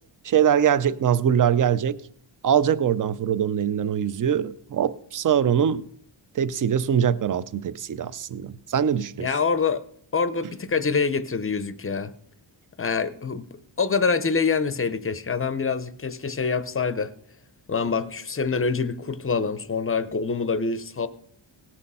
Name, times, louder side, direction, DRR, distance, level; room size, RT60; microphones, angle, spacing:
voice 1, 0.2-2.0 2.4-5.8 6.3-9.3, right 8 dB, 40° right, 0.5 m, -22 dB
voice 2, 9.2-9.8 10.1-12.1 12.8-13.5 13.8-17.1 17.7-21.1, left 5 dB, 25° left, 0.5 m, -25 dB
18.0 x 6.4 x 5.4 m
wide cardioid pair, 140°, 50 cm